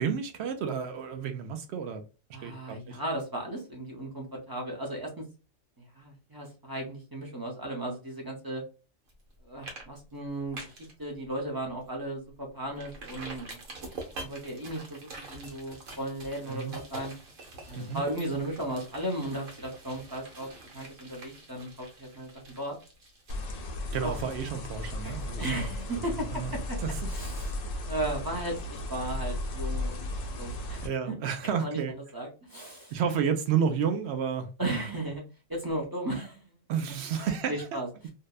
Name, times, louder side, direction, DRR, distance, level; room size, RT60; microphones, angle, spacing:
voice 1, 0.0-2.0 2.4-3.0 16.5-16.8 17.8-18.0 23.9-25.7 26.3-26.5 26.8-27.0 30.8-31.9 32.9-34.8 36.7-37.5, right 7 dB, 65° right, 0.8 m, -31 dB
voice 2, 2.3-5.2 5.8-8.6 9.4-13.6 14.0-17.1 17.7-20.5 20.7-22.3 22.6-22.8 24.0-24.2 25.0-26.8 27.1-30.1 30.4-31.2 31.6-33.0 34.6-35.2 35.5-36.5 37.1-37.9, right 1 dB, 25° right, 0.6 m, -36 dB
sound 1, 9.1-9.3 9.6-9.8 10.1-10.9 11.4-11.5 11.9-12.0 12.8-26.3 26.6-26.7, right 2 dB, 85° right, 1.3 m, -45 dB
sound 2, 23.3-30.9, left 1 dB, 80° left, 1.0 m, -35 dB
2.7 x 2.1 x 2.2 m
omnidirectional pair, 1.3 m